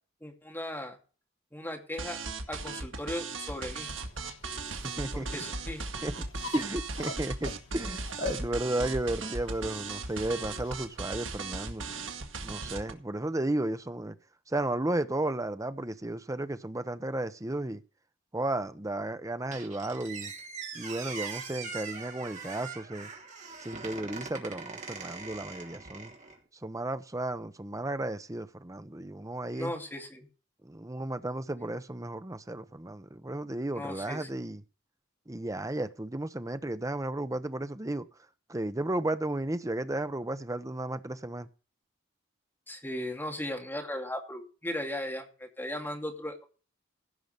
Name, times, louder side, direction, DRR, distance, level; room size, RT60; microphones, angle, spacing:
voice 1, 0.2-1.0 1.5-2.2 2.5-3.9 5.1-5.9 29.5-30.3 33.7-34.3 42.7-46.4, left 1 dB, 10° left, 2.5 m, -37 dB
sound 1, 2.0-12.9, right 3 dB, 75° right, 2.0 m, -37 dB
sound 2, 3.8-11.0, left 5 dB, 80° left, 1.8 m, -44 dB
voice 2, 4.8-5.3 6.0-6.1 6.5-11.8 12.4-14.1 14.5-17.8 18.3-20.3 20.7-23.1 23.6-26.1 26.6-29.7 30.6-34.6 35.3-38.1 38.5-41.5, right 1 dB, 15° right, 0.8 m, -33 dB
Squeak, 19.5-26.4, right 5 dB, 40° right, 3.2 m, -42 dB
16.0 x 5.9 x 6.6 m
head